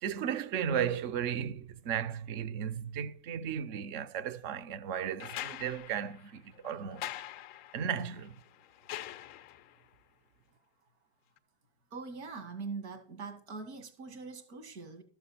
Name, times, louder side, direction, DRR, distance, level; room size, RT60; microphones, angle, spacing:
voice 1, 0.0-7.1 7.7-8.3, right 8 dB, 35° right, 0.6 m, -35 dB
sound 1, 5.2-9.8 11.4-11.5, left 13 dB, 30° left, 0.4 m, -44 dB
voice 2, 11.9-15.0, right 4 dB, 85° right, 2.1 m, -42 dB
12.0 x 6.9 x 4.3 m
supercardioid pair, 140°, 33 cm